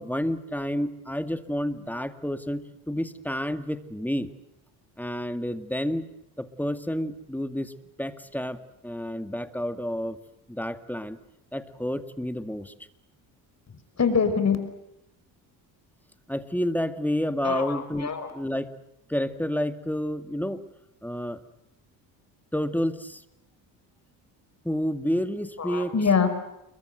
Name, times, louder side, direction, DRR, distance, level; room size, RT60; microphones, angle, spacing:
voice 1, 0.0-4.3 5.0-6.0 6.4-7.7 8.0-10.2 10.5-11.2 11.5-12.7 16.3-18.7 19.1-20.6 21.0-21.4 22.5-23.2 24.6-25.9, equal, 5° left, 10 dB, 2.0 m, -30 dB
voice 2, 14.0-14.6 17.4-18.3 25.6-26.3, left 6 dB, 35° left, 9 dB, 5.5 m, -24 dB
29.0 x 22.5 x 8.0 m, 0.84 s
cardioid pair, 90°, 45 cm